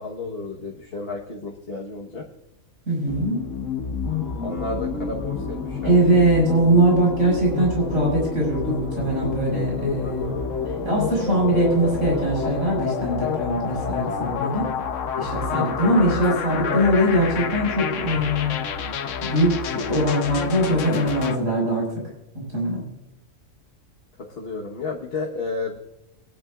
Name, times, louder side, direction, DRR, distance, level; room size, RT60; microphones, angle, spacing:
voice 1, 0.0-2.3 4.4-6.2 10.0-10.3 14.4-14.7 15.8-16.0 16.7-16.9 24.4-25.8, left 3 dB, 50° left, -1 dB, 1.4 m, -32 dB
voice 2, 2.9-3.4 5.8-10.4 10.8-14.7 15.2-18.5 19.2-21.9 22.3-22.8, right 1 dB, 75° right, -3 dB, 5.8 m, -21 dB
sound 1, 3.1-21.4, left 7 dB, 70° left, 1.1 m, -29 dB
sound 2, 4.0-12.9, right 1 dB, 15° right, 3.2 m, -37 dB
22.5 x 11.0 x 2.4 m, 0.92 s
omnidirectional pair, 1.4 m